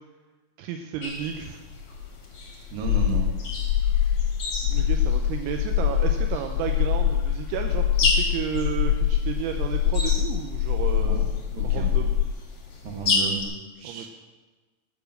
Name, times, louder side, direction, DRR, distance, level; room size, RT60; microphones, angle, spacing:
voice 1, 0.6-1.6 4.7-11.2 11.6-12.2 13.8-14.1, right 9 dB, 80° right, 4 dB, 3.0 m, -32 dB
sound 1, 1.0-13.4, left 3 dB, 45° left, 2.0 m, -33 dB
voice 2, 2.7-3.3 4.6-4.7 10.9-11.3 11.5-11.9 12.8-13.4 13.8-14.1, right 6 dB, 60° right, 1 dB, 2.9 m, -33 dB
sound 2, 2.8-12.3, left 10 dB, 85° left, 3.0 m, -24 dB
13.0 x 7.1 x 6.3 m, 1.3 s
omnidirectional pair, 5.6 m